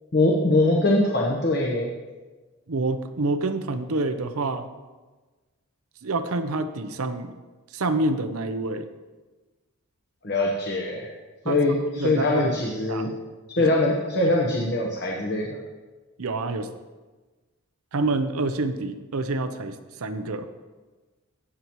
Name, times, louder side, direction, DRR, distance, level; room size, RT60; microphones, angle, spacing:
voice 1, 0.1-1.9 10.2-11.1 11.4-13.1 13.6-15.6, left 2 dB, 50° left, -2 dB, 1.0 m, -22 dB
voice 2, 2.7-4.7 6.0-7.4 7.7-8.9 11.4-11.6 12.0-12.5 12.9-13.1 13.6-13.7 16.2-16.7 17.9-20.5, right 2 dB, 80° right, 9 dB, 0.7 m, -27 dB
16.0 x 7.0 x 3.1 m, 1.3 s
head